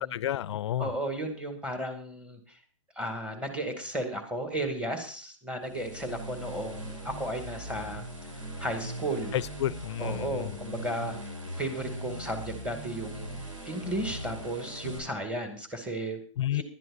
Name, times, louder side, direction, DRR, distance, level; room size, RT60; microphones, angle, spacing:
voice 1, 0.0-0.9 9.3-10.5 16.4-16.6, left 12 dB, 60° left, 0.5 m, -30 dB
voice 2, 0.8-2.6 3.0-8.0 8.6-9.3 10.0-11.2 11.6-16.2 16.5-16.6, right 1 dB, 5° right, 2.1 m, -34 dB
sound 1, 5.6-15.0, equal, 85° right, 5.7 m, -40 dB
20.0 x 12.0 x 2.6 m
hypercardioid pair, 130°, 17 cm